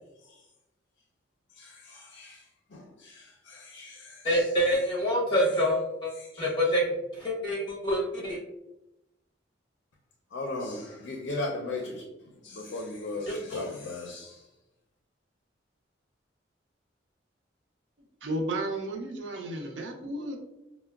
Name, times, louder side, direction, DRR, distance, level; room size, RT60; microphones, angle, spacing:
voice 1, 1.6-2.4 2.7-4.4 6.2-6.5 10.3-12.0 12.4-14.4, left 2 dB, 70° left, 1 dB, 0.4 m, -37 dB
voice 2, 4.2-6.1 6.4-6.9 7.2-8.4 13.3-13.6, equal, 25° left, -5 dB, 1.0 m, -26 dB
voice 3, 18.2-20.4, right 1 dB, 80° right, 2 dB, 0.5 m, -33 dB
4.5 x 2.0 x 2.3 m, 0.93 s
head